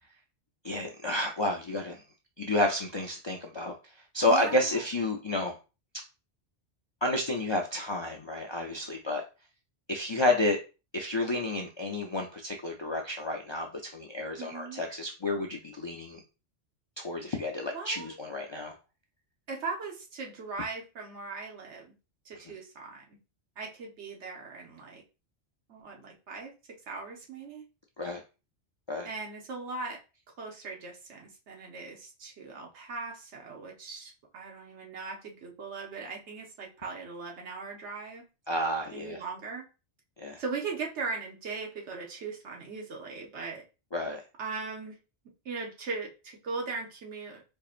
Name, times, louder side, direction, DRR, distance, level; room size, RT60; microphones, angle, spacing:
voice 1, 0.6-2.0 2.4-3.7 4.1-5.5 7.0-9.2 9.9-10.6 10.9-16.2 17.0-18.7 28.0-28.2 28.9-29.1 38.5-39.2 40.2-40.4 43.9-44.2, left 1 dB, 50° left, 1 dB, 0.3 m, -30 dB
voice 2, 4.3-4.8 14.4-14.9 17.7-18.2 19.5-21.9 22.2-23.2 23.6-25.0 25.7-26.5 26.9-27.6 29.0-30.0 30.4-38.2 38.9-39.7 40.4-43.6 44.4-45.0 45.4-47.4, right 4 dB, 85° right, 1 dB, 1.2 m, -39 dB
4.4 x 2.9 x 2.4 m, 0.31 s
omnidirectional pair, 1.1 m